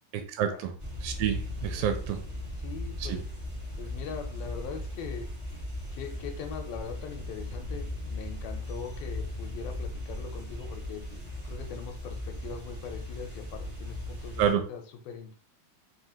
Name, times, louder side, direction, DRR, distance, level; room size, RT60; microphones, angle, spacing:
voice 1, 0.1-0.7 1.0-2.2 3.1-3.2 14.4-14.6, right 9 dB, 80° right, 6 dB, 2.2 m, -28 dB
sound 1, 0.8-14.5, left 1 dB, 55° right, 0.5 m, -37 dB
voice 2, 1.7-3.3 3.8-5.3 5.9-11.1 11.4-15.4, left 6 dB, 85° left, 4 dB, 2.4 m, -41 dB
5.9 x 2.4 x 2.8 m, 0.41 s
omnidirectional pair, 4.2 m